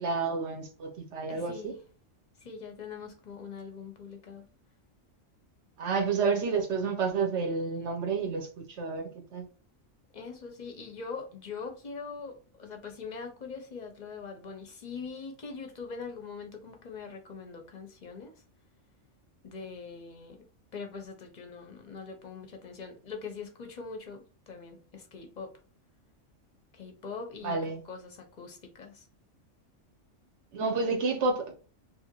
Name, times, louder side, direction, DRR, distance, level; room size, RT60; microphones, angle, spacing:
voice 1, 0.0-1.7 5.8-9.4 27.4-27.8 30.5-31.5, right 4 dB, 70° right, 0.9 m, -30 dB
voice 2, 1.3-1.7 2.4-4.5 10.1-18.4 19.4-25.5 26.7-29.1, left 5 dB, 50° left, 0.6 m, -42 dB
2.7 x 2.4 x 2.8 m
omnidirectional pair, 1.3 m